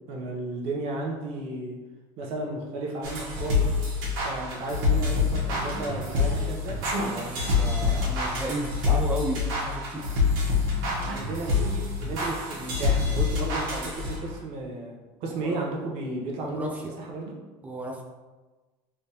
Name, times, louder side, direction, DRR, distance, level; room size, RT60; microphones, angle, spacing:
voice 1, 0.0-1.8 2.2-3.6 4.2-6.8 11.0-14.9 15.2-16.7 17.0-17.3, right 2 dB, 60° right, -1 dB, 0.8 m, -33 dB
sound 1, 3.0-14.4, left 4 dB, 85° right, 1.1 m, -26 dB
voice 2, 7.1-10.0 15.3-15.6 16.4-17.0 17.6-18.0, right 1 dB, 15° right, 1 dB, 0.4 m, -34 dB
3.5 x 3.2 x 2.8 m, 1.3 s
cardioid pair, 155°, 11 cm